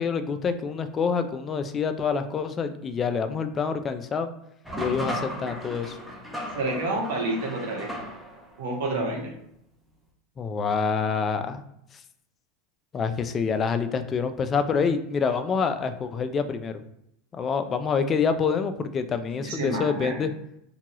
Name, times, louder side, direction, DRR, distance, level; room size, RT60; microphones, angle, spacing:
voice 1, 0.0-4.3 4.8-6.0 10.4-11.6 12.9-16.8 17.3-20.3, left 5 dB, 30° left, 9 dB, 0.3 m, -26 dB
sound 1, 4.6-8.6, equal, 5° right, 0.6 m, -35 dB
voice 2, 6.6-7.9 8.6-9.3 19.4-20.3, right 2 dB, 80° right, -1 dB, 0.9 m, -29 dB
2.8 x 2.3 x 2.9 m, 0.76 s
hypercardioid pair, 105°, 0 cm